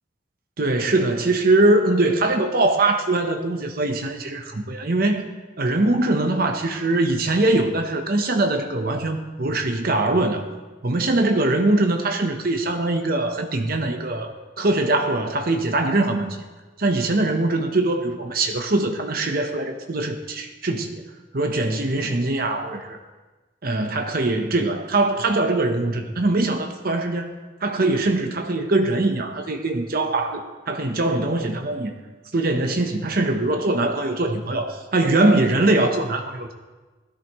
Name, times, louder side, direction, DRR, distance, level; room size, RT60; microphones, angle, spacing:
voice 1, 0.6-5.3 5.6-10.4 10.8-16.4 16.8-21.0 21.3-23.0 23.6-27.3 27.6-31.9 32.3-36.7, right 2 dB, 50° right, 5 dB, 0.9 m, -22 dB
16.5 x 13.5 x 3.1 m, 1.3 s
head